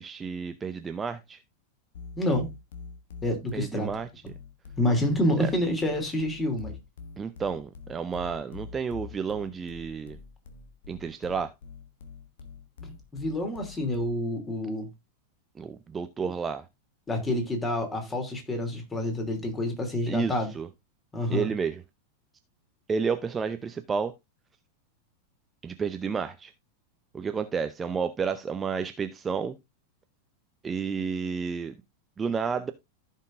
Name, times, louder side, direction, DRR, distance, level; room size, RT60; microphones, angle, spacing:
voice 1, 0.0-1.4 3.5-4.1 5.4-5.5 7.2-10.2 10.9-11.5 15.6-16.6 20.1-20.7 21.3-21.8 22.9-24.1 25.6-26.5 27.1-29.6 30.6-31.7 32.2-32.7, right 6 dB, 20° right, 0.7 m, -31 dB
sound 1, 1.9-14.3, left 5 dB, 60° left, 1.4 m, -45 dB
voice 2, 2.1-2.5 3.2-3.9 4.8-6.7 12.8-14.9 17.1-20.5 21.1-21.5, left 1 dB, 15° left, 2.9 m, -28 dB
15.0 x 5.6 x 2.6 m
figure-of-eight pair, 90°, 0 cm